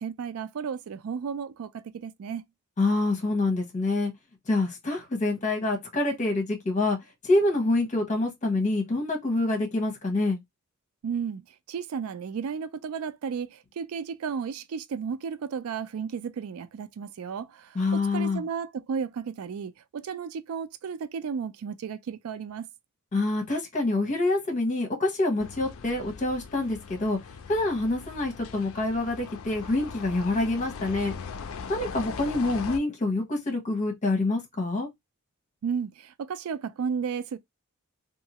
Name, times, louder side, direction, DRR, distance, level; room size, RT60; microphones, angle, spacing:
voice 1, 0.0-2.4 11.0-11.4 11.7-22.7 35.6-37.4, right 6 dB, 85° right, 0.4 m, -33 dB
voice 2, 2.8-4.1 4.5-7.0 7.2-10.4 17.7-18.4 23.1-27.2 27.5-31.1 31.7-34.9, left 2 dB, 35° left, 1.0 m, -26 dB
sound 1, 25.4-32.8, left 5 dB, 70° left, 0.4 m, -40 dB
2.7 x 2.5 x 2.9 m
head